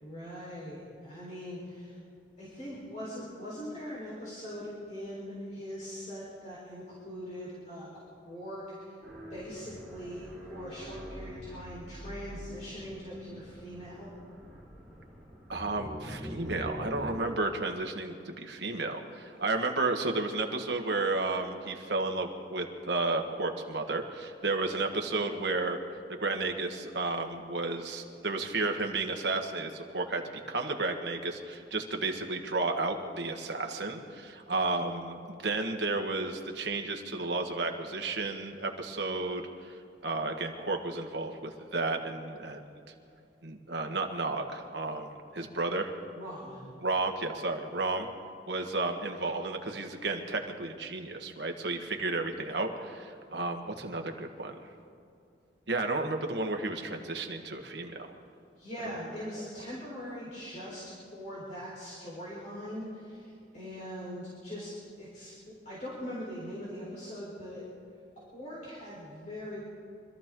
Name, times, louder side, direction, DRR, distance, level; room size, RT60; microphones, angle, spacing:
voice 1, 0.0-2.0 2.4-9.0 9.3-14.1 46.1-46.6 58.6-64.7 65.0-67.6 68.3-69.6, equal, 40° left, -8 dB, 4.2 m, -41 dB
sound 1, 9.0-17.1, equal, ahead, 3.8 m, -44 dB
voice 2, 15.5-25.8 26.1-42.7 43.4-45.9 46.8-48.1 48.5-54.6 55.7-58.1, right 3 dB, 75° right, 3 dB, 1.6 m, -32 dB
25.5 x 13.5 x 3.8 m, 2.5 s
head